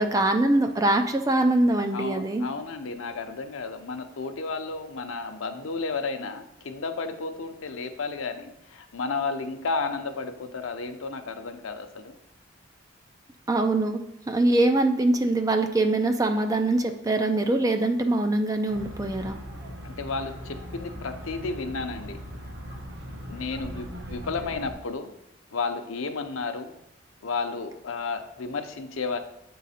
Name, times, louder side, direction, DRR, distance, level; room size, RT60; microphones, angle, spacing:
voice 1, 0.0-2.5 13.5-19.4, right 2 dB, 15° right, 5 dB, 0.4 m, -23 dB
voice 2, 1.9-12.2 19.8-22.2 23.3-25.1 25.5-26.7 27.2-29.2, left 4 dB, 85° left, 7 dB, 0.7 m, -32 dB
sound 1, 18.7-24.7, equal, 55° right, 1.0 m, -39 dB
8.2 x 3.9 x 4.2 m, 0.80 s
head